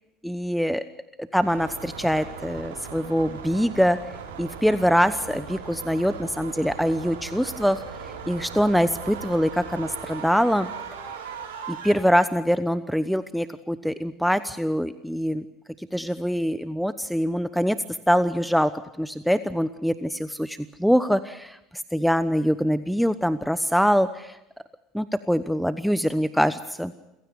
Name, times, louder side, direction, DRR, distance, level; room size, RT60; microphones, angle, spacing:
voice 1, 0.2-0.8 1.2-4.0 4.4-7.8 8.3-10.7 11.7-15.4 15.8-17.8 18.1-18.7 19.0-24.4 24.9-26.9, equal, ahead, 14 dB, 0.9 m, -24 dB
sound 1, 1.4-11.9, right 6 dB, 75° right, 4.4 m, -38 dB
29.0 x 16.5 x 7.0 m, 0.89 s
figure-of-eight pair, 65°, 0 cm